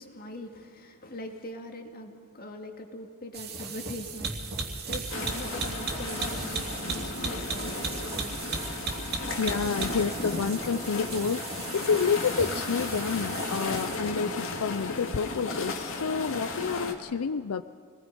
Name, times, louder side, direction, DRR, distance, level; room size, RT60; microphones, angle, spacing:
voice 1, 0.0-4.6 4.9-8.4, left 1 dB, 45° left, 4 dB, 2.1 m, -42 dB
sound 1, 3.3-14.2, right 4 dB, 45° right, 2.5 m, -36 dB
sound 2, 5.1-16.9, left 3 dB, 65° left, 2.3 m, -35 dB
voice 2, 9.4-17.6, left 5 dB, 90° left, 10 dB, 0.5 m, -29 dB
28.0 x 19.5 x 5.4 m, 2.1 s
head